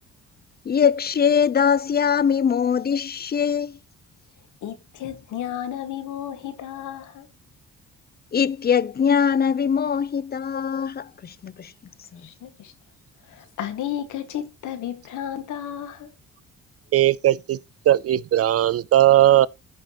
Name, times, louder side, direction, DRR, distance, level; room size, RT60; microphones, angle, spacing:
voice 1, 0.7-3.8 8.3-11.7 12.1-12.3, left 7 dB, 30° left, 0.6 m, -22 dB
voice 2, 4.6-7.3 12.2-12.7 13.3-16.1, left 10 dB, 80° left, 1.9 m, -33 dB
voice 3, 16.9-17.6 17.9-19.5, right 13 dB, 50° right, 0.4 m, -17 dB
14.5 x 5.2 x 3.0 m
cardioid pair, 90°, 30 cm